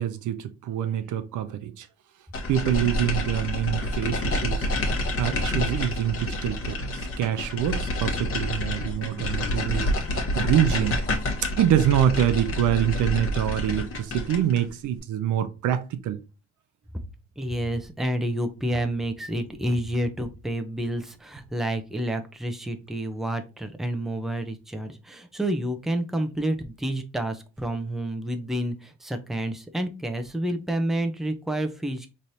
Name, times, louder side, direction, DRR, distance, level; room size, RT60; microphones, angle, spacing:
voice 1, 0.0-1.9 2.5-11.0 11.6-16.2, right 10 dB, 80° right, 0.6 m, -26 dB
sound 1, 2.3-14.7, left 1 dB, 45° left, 1.2 m, -28 dB
voice 2, 17.4-32.1, right 1 dB, ahead, 0.6 m, -29 dB
4.1 x 3.2 x 2.7 m
cardioid pair, 90°, 30 cm